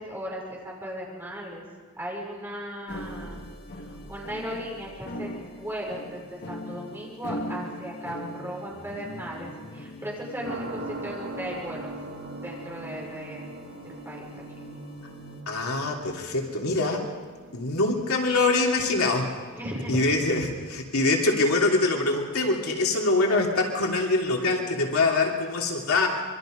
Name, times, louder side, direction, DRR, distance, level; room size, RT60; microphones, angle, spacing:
voice 1, 0.0-1.6 2.0-3.4 3.9-11.9 12.4-13.5 13.8-14.3 19.5-20.0, equal, 10° right, -3 dB, 6.5 m, -36 dB
sound 1, 2.9-15.4, equal, 50° left, 1.9 m, -41 dB
sound 2, 10.4-20.1, right 1 dB, 55° right, 2.2 m, -42 dB
voice 2, 15.5-17.0 17.5-19.3 19.9-26.1, left 3 dB, 75° left, 0 dB, 3.1 m, -24 dB
26.5 x 24.0 x 5.3 m, 1.5 s
head